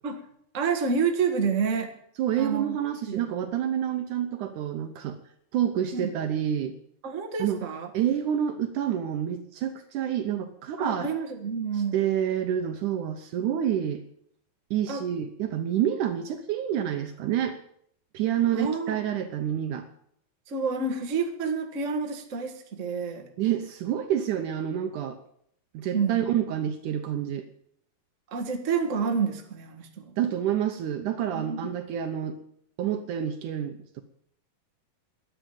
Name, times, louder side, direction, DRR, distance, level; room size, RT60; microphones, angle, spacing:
voice 1, 0.5-1.9 2.4-2.8 3.1-3.3 5.9-6.1 7.0-7.9 10.8-12.0 14.9-15.0 18.5-19.0 20.5-23.3 25.9-26.3 28.3-30.1 31.3-31.6, right 5 dB, 55° right, 4 dB, 0.8 m, -29 dB
voice 2, 2.2-5.2 5.5-6.8 7.4-7.6 7.9-11.1 11.9-14.0 14.7-17.6 18.1-19.9 23.4-25.2 25.7-27.5 30.2-32.4 32.8-34.0, right 10 dB, 70° right, 7 dB, 2.0 m, -28 dB
12.5 x 9.3 x 9.1 m, 0.70 s
omnidirectional pair, 4.4 m